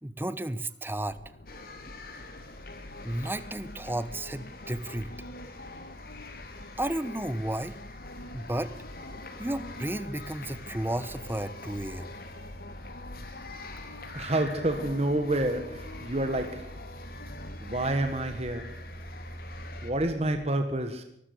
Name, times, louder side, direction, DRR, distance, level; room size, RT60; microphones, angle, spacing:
voice 1, 0.0-1.2 3.0-5.1 6.8-7.7 8.3-8.7 9.4-12.1, right 1 dB, 10° right, 0.9 m, -33 dB
sound 1, 1.0-20.5, left 1 dB, 70° left, 1.6 m, -45 dB
sound 2, 1.5-19.9, left 2 dB, 55° left, 3.5 m, -45 dB
voice 2, 14.1-16.7 17.6-18.7 19.8-21.0, right 1 dB, 35° right, 1.6 m, -28 dB
23.5 x 13.5 x 8.3 m
head